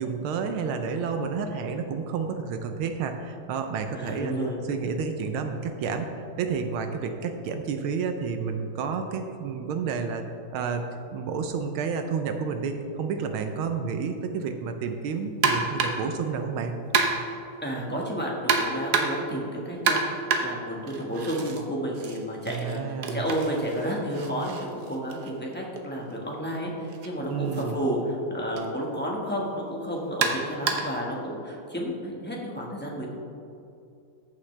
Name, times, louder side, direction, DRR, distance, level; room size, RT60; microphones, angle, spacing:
voice 1, 0.0-4.3 4.7-10.8 11.1-16.8 22.5-23.3 27.3-27.8, right 5 dB, 80° right, 6 dB, 1.5 m, -30 dB
voice 2, 3.9-4.6 17.6-33.1, equal, 5° left, -3 dB, 1.1 m, -31 dB
sound 1, 15.4-16.1 16.9-17.4 18.5-19.3 19.9-21.6 21.9-25.8 26.9-27.1 27.5-27.6 28.6-28.7 30.2-31.0, right 5 dB, 60° right, 1.2 m, -28 dB
14.0 x 7.2 x 3.3 m, 2.7 s
omnidirectional pair, 2.3 m